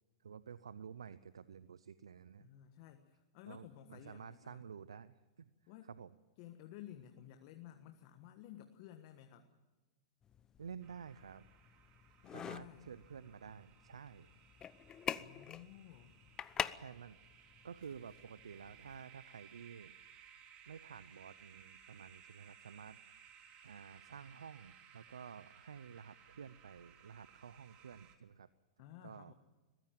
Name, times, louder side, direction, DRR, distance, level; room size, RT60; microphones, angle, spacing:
voice 1, 0.2-2.5 3.5-5.5 5.8-6.1 10.6-11.4 12.3-14.3 16.8-17.2 17.6-19.9 20.7-23.0 23.6-28.5 29.0-29.3, right 7 dB, 90° right, 16 dB, 0.6 m, -51 dB
voice 2, 2.4-4.6 5.7-5.9 6.4-9.5 12.2-12.9 15.2-16.2 28.8-29.3, left 12 dB, 55° left, 7 dB, 1.5 m, -54 dB
sound 1, 10.2-19.0, left 8 dB, 25° left, 0.7 m, -46 dB
sound 2, 10.8-28.2, right 8 dB, 40° right, 2.9 m, -61 dB
22.0 x 15.0 x 9.1 m, 1.3 s
hypercardioid pair, 115°, 3 cm